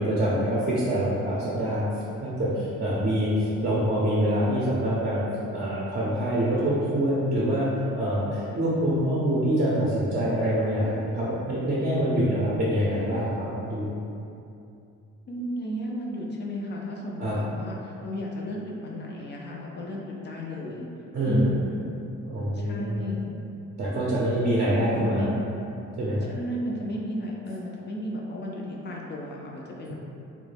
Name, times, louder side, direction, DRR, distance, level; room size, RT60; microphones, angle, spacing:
voice 1, 0.0-1.9 2.2-5.2 5.5-7.7 8.0-13.9 17.2-17.4 21.1-21.4 22.2-23.1 23.8-25.3 26.0-26.3, equal, 35° right, -7 dB, 0.5 m, -25 dB
voice 2, 15.3-20.9 21.3-21.9 22.5-23.4 24.4-25.4 26.3-29.9, equal, 35° left, -2 dB, 0.4 m, -33 dB
2.2 x 2.1 x 3.2 m, 2.6 s
cardioid pair, 90°, 30 cm